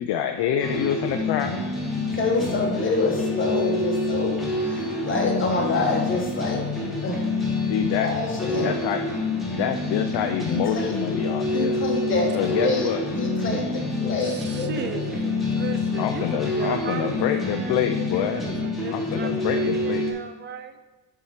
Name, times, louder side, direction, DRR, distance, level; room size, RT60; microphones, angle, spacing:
voice 1, 0.0-1.6 7.7-8.1 8.6-9.0 9.6-11.8 12.3-13.0 16.0-18.4 18.9-20.0, left 9 dB, 65° left, 5 dB, 0.6 m, -26 dB
sound 1, 0.6-20.1, left 2 dB, ahead, 1.3 m, -27 dB
Microwave oven, 1.0-17.3, right 3 dB, 60° right, 2.8 m, -47 dB
voice 2, 2.1-4.4 5.0-6.6 7.0-7.2 8.0-8.7 10.5-10.9 11.5-12.9 13.1-14.9, left 3 dB, 25° left, 0 dB, 1.2 m, -26 dB
voice 3, 14.2-20.8, right 5 dB, 25° right, 9 dB, 0.3 m, -36 dB
10.5 x 4.9 x 4.4 m, 1.2 s
cardioid pair, 180°, 43 cm